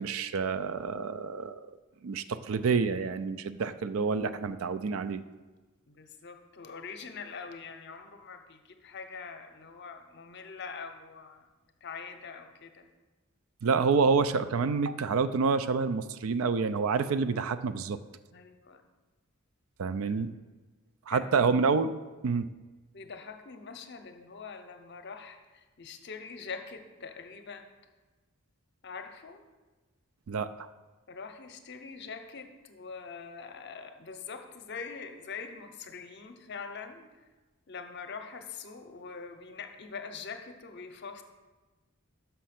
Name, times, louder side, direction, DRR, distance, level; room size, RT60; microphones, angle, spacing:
voice 1, 0.0-1.5 2.0-5.2 13.6-18.0 19.8-20.3 21.1-21.9 22.2-22.5 30.3-30.7, right 5 dB, 75° right, 13 dB, 0.4 m, -28 dB
voice 2, 5.9-11.5 11.8-12.9 18.3-18.8 20.1-20.3 21.1-21.4 22.9-27.7 28.8-29.4 31.1-37.2 37.7-41.2, left 5 dB, 50° left, 6 dB, 0.7 m, -44 dB
6.3 x 5.7 x 5.8 m, 1.2 s
head